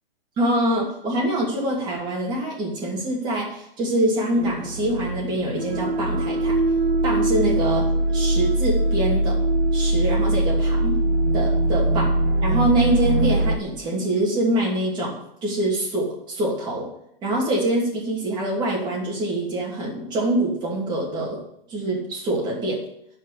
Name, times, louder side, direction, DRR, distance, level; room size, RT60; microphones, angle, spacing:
voice 1, 0.4-6.6 7.0-9.4 9.7-11.0 11.3-12.1 12.4-15.2 15.4-16.9 17.2-21.4 21.7-22.8, right 1 dB, 15° right, -3 dB, 2.7 m, -24 dB
sound 1, 4.4-13.6, right 1 dB, 85° right, 1.5 m, -22 dB
11.5 x 5.1 x 8.3 m, 0.74 s
hypercardioid pair, 170°, 29 cm